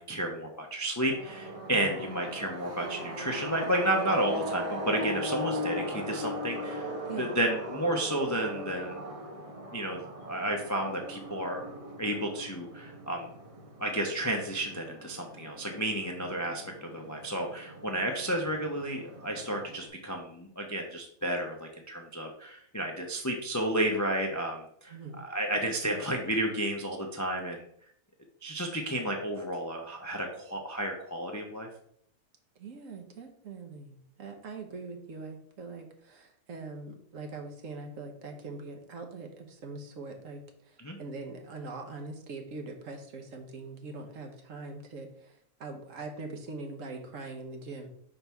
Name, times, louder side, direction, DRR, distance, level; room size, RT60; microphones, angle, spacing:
voice 1, 0.0-9.0 9.7-11.7 12.0-13.3 13.8-27.6 28.4-31.7 40.8-41.0, right 1 dB, 25° left, 1 dB, 0.4 m, -32 dB
sound 1, 1.1-19.9, equal, 30° right, 0.8 m, -39 dB
voice 2, 24.9-25.2 32.6-40.4 40.7-40.8 41.0-45.3 45.6-47.9, right 3 dB, 65° right, 3 dB, 1.3 m, -42 dB
5.5 x 3.9 x 4.6 m, 0.67 s
omnidirectional pair, 1.5 m